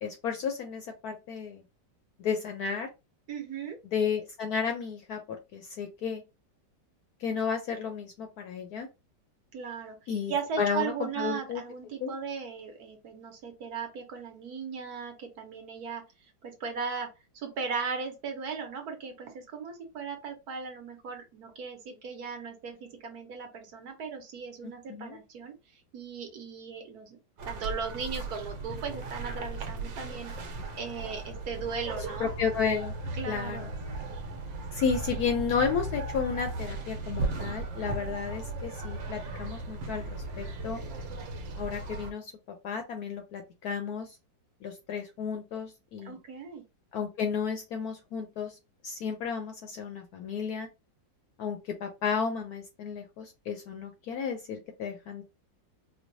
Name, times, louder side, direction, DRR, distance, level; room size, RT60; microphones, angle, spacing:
voice 1, 0.0-1.6 2.2-2.9 3.8-6.2 7.2-8.9 10.1-11.6 12.0-12.1 24.6-25.2 32.2-32.9 33.3-33.7 34.7-40.8 41.6-42.3 42.6-44.1 44.6-46.2 46.9-48.6 48.8-50.7 51.4-55.2, left 6 dB, 70° left, 5 dB, 0.9 m, -32 dB
voice 2, 3.3-3.8 9.5-25.5 25.9-27.2 27.4-30.3 30.7-32.3 33.2-33.7 46.0-46.6, right 6 dB, 60° right, 3 dB, 1.2 m, -37 dB
sound 1, 27.4-42.1, right 2 dB, 80° right, 1.4 m, -37 dB
4.5 x 2.2 x 2.6 m, 0.27 s
omnidirectional pair, 2.0 m